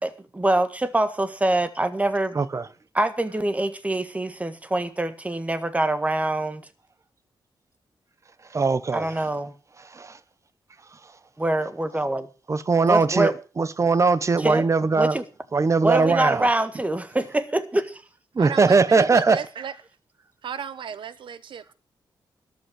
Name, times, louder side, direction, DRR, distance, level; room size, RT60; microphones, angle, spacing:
voice 1, 0.0-2.4 2.9-6.6 8.9-9.5 11.4-12.3 12.8-13.3 14.4-14.7 15.0-15.2 15.8-18.0, right 1 dB, 15° right, 1.7 m, -24 dB
voice 2, 2.3-2.7 8.5-9.1 9.9-10.2 12.5-15.2 15.5-16.5 18.3-19.4, right 4 dB, 35° right, 1.2 m, -20 dB
voice 3, 18.4-19.7 20.4-21.7, right 8 dB, 80° right, 1.3 m, -34 dB
13.5 x 11.0 x 6.4 m
cardioid pair, 100°, 8 cm